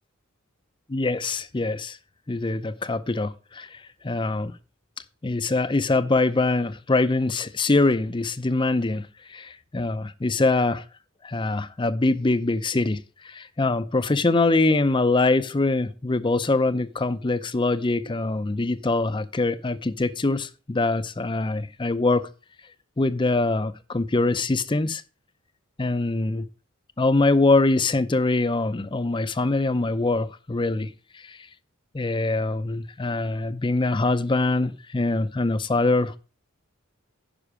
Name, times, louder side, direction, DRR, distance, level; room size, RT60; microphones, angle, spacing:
voice 1, 0.9-2.0 2.3-4.5 5.2-10.8 11.2-13.0 13.2-22.3 23.0-25.0 25.8-26.4 27.0-30.9 31.3-31.4 31.9-36.2, left 2 dB, 20° left, 0.5 m, -23 dB
10.0 x 5.5 x 4.8 m
head